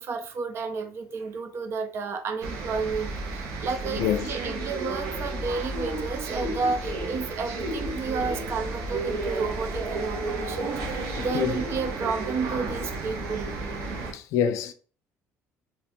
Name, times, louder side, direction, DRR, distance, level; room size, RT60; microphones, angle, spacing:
voice 1, 0.0-13.5, right 4 dB, 50° right, 0.5 m, -31 dB
sound 1, 2.4-14.1, right 2 dB, 75° right, 0.8 m, -32 dB
voice 2, 4.0-4.3 10.8-11.5 14.1-14.7, left 9 dB, 70° left, 0.4 m, -27 dB
2.8 x 2.3 x 3.4 m
cardioid pair, 120°, 6 cm